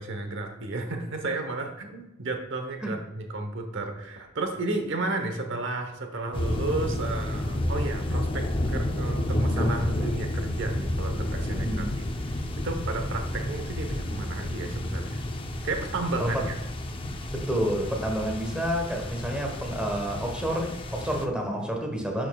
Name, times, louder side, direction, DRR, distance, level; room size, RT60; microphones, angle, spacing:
voice 1, 0.0-11.9 12.2-15.2 15.6-16.5, right 2 dB, 60° right, 5 dB, 1.0 m, -32 dB
sound 1, 6.3-21.3, left 1 dB, 25° left, 0.6 m, -30 dB
voice 2, 11.5-11.9 16.2-16.4 17.0-22.3, equal, 5° right, 1 dB, 1.2 m, -29 dB
11.0 x 6.4 x 2.3 m, 0.99 s
head